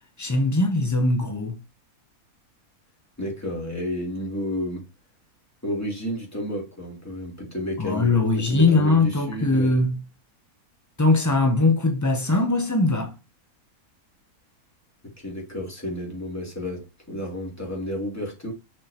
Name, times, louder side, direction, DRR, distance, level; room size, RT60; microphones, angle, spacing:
voice 1, 0.2-1.6 7.8-10.0 11.0-13.2, left 2 dB, 25° left, 0.3 m, -21 dB
voice 2, 3.2-4.8 5.6-9.7 15.0-18.5, equal, 10° left, 2.7 m, -31 dB
6.4 x 6.3 x 2.8 m
omnidirectional pair, 1.7 m